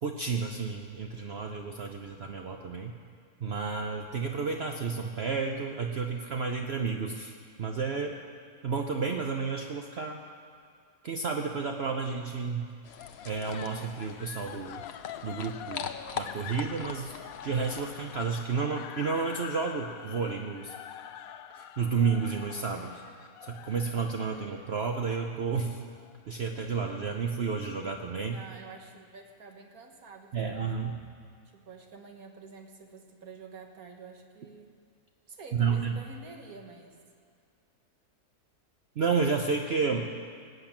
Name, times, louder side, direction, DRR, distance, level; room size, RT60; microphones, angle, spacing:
voice 1, 0.0-2.9 3.4-7.3 7.6-8.1 8.6-10.2 11.0-12.7 13.2-14.8 15.2-15.9 16.2-17.1 17.4-20.7 21.5-25.8 26.3-28.4 30.3-31.0 35.5-36.0 39.0-40.1, right 5 dB, 50° right, 3 dB, 0.9 m, -31 dB
sound 1, 12.8-18.4, left 7 dB, 55° left, 1.0 m, -42 dB
Succubus Laughter, 13.0-26.1, left 10 dB, 80° left, 1.1 m, -45 dB
voice 2, 28.2-30.8 31.5-34.7 35.3-37.0, right 4 dB, 80° right, 3 dB, 1.9 m, -48 dB
19.5 x 8.0 x 8.7 m, 2.3 s
omnidirectional pair, 1.5 m